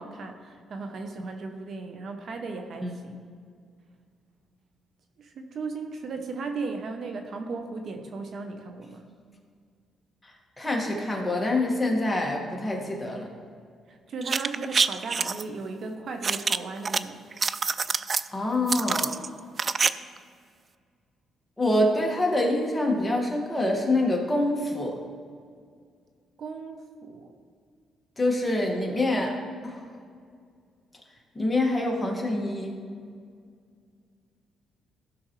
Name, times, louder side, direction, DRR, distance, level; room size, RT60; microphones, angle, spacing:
voice 1, 0.0-3.3 5.2-9.1 13.9-17.3 26.4-27.3, right 4 dB, 55° right, 5 dB, 0.9 m, -36 dB
voice 2, 10.2-13.3 18.3-19.2 21.6-25.0 28.2-29.4 29.6-29.9 31.3-32.8, left 1 dB, 10° left, -1 dB, 1.9 m, -26 dB
sound 1, 14.2-15.4 16.2-17.0 17.3-18.3 18.7-19.9 20.2-20.3, right 5 dB, 40° right, 0.3 m, -26 dB
15.5 x 6.2 x 3.2 m, 2.2 s
cardioid pair, 90°, 0 cm